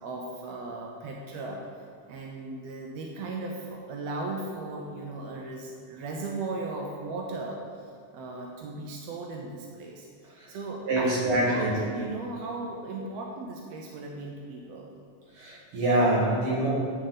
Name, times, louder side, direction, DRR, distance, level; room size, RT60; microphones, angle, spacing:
voice 1, 0.0-1.6 2.1-7.6 8.1-10.1 10.5-14.9, right 2 dB, 80° right, 0 dB, 1.4 m, -36 dB
voice 2, 10.9-11.7 15.4-16.7, right 1 dB, 50° right, -6 dB, 2.1 m, -25 dB
10.0 x 4.2 x 3.9 m, 2.1 s
omnidirectional pair, 3.6 m